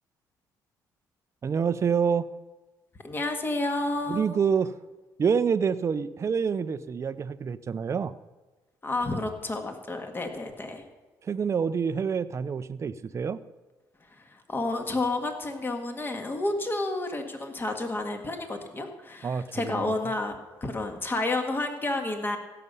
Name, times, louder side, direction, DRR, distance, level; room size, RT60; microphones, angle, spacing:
voice 1, 1.4-2.3 4.1-4.7 5.2-8.1 11.2-13.4 19.2-19.8, right 6 dB, 35° right, 12 dB, 0.5 m, -27 dB
voice 2, 3.0-4.4 8.8-10.8 14.3-22.4, left 2 dB, 25° left, 5 dB, 1.8 m, -30 dB
16.0 x 6.9 x 5.5 m, 1.2 s
cardioid pair, 85°, 8 cm